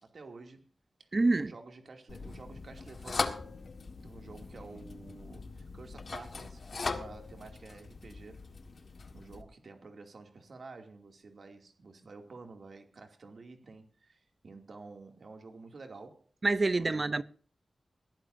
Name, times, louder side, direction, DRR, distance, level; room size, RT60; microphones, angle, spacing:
voice 1, 0.0-0.7 1.0-3.4 4.0-8.5 9.1-16.3 16.7-17.2, right 3 dB, 65° right, 2.6 m, -50 dB
voice 2, 1.1-1.5 16.4-17.2, right 3 dB, 35° right, 0.6 m, -27 dB
sound 1, 2.1-9.4, left 4 dB, 55° left, 1.6 m, -40 dB
21.5 x 15.5 x 2.7 m
wide cardioid pair, 110°, 0 cm